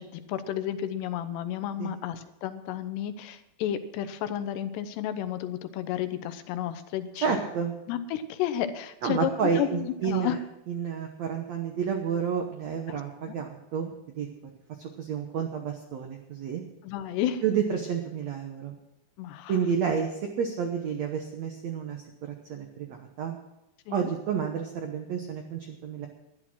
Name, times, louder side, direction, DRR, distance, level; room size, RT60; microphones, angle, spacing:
voice 1, 0.0-7.4 7.9-9.3 9.6-10.4 12.9-13.0 13.3-13.4 16.8-17.4 19.2-19.5 23.9-24.1, left 11 dB, 90° left, 11 dB, 3.0 m, -32 dB
voice 2, 7.2-7.7 9.0-10.4 10.7-14.3 14.8-16.6 17.4-18.8 19.5-23.4 23.9-26.1, right 7 dB, 75° right, 4 dB, 1.6 m, -30 dB
12.5 x 11.0 x 6.1 m, 0.90 s
omnidirectional pair, 4.7 m